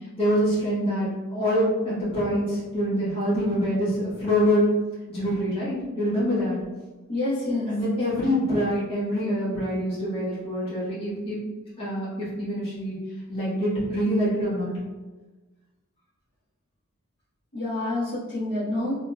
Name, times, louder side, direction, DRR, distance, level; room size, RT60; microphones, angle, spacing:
voice 1, 0.2-4.7 5.1-6.6 7.7-11.4 11.8-13.0 13.3-14.7, equal, 25° left, -10 dB, 1.4 m, -25 dB
voice 2, 7.1-7.7 17.5-19.0, left 2 dB, 50° left, -11 dB, 1.1 m, -27 dB
3.4 x 2.9 x 2.3 m, 1.2 s
head